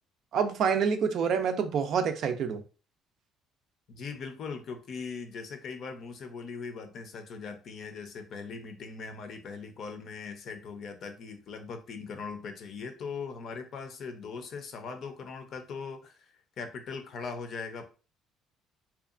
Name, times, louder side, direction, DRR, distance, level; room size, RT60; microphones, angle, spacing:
voice 1, 0.3-2.6, right 6 dB, 65° right, 0.4 m, -27 dB
voice 2, 3.9-17.8, left 5 dB, 60° left, 0.5 m, -40 dB
2.7 x 2.3 x 2.4 m
supercardioid pair, 85°, 0 cm